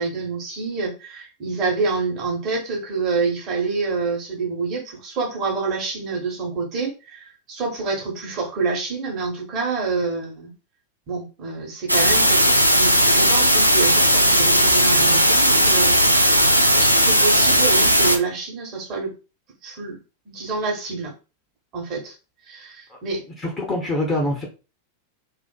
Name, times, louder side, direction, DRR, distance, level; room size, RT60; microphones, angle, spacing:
voice 1, 0.0-10.5 11.1-16.5 16.8-19.1 19.6-20.0 20.3-21.1 21.7-22.1 22.4-23.2, right 4 dB, 35° right, -1 dB, 1.1 m, -27 dB
sound 1, 11.9-18.2, equal, 90° right, 0.4 m, -16 dB
voice 2, 23.4-24.4, left 1 dB, 15° left, 0 dB, 0.7 m, -24 dB
2.5 x 2.4 x 2.3 m, 0.31 s
figure-of-eight pair, 90°, 0 cm